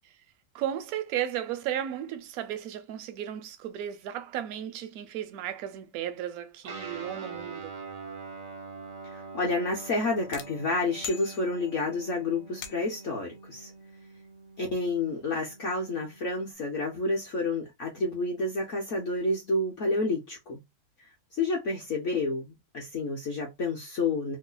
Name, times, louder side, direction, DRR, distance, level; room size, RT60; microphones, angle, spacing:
voice 1, 0.5-7.7, right 11 dB, 75° right, 0.8 m, -34 dB
Guitar, 6.6-16.5, right 4 dB, 55° right, 0.4 m, -44 dB
voice 2, 9.0-13.7 14.6-20.6 21.3-24.4, left 2 dB, 60° left, 0.8 m, -29 dB
sound 1, 10.3-11.9 12.6-13.1, left 7 dB, 80° left, 1.3 m, -43 dB
3.1 x 2.0 x 3.8 m
omnidirectional pair, 2.1 m